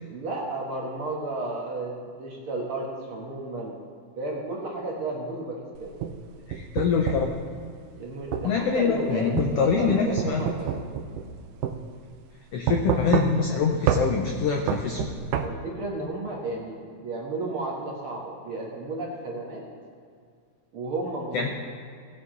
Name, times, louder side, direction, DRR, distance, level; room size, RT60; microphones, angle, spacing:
voice 1, 0.1-3.7 4.2-5.9 8.0-9.3 9.8-10.9 15.4-19.6 20.7-21.5, right 2 dB, 55° right, -2 dB, 1.8 m, -33 dB
sound 1, 5.8-7.3 8.3-8.5 9.4-11.4 11.6-11.8 12.7-13.5 13.9-14.1 14.7-15.5, right 8 dB, 80° right, 2.2 m, -27 dB
voice 2, 6.5-7.3 8.4-10.4 12.5-15.0 21.3-21.5, left 5 dB, 80° left, 2 dB, 1.4 m, -24 dB
18.0 x 6.8 x 3.8 m, 2.2 s
omnidirectional pair, 3.7 m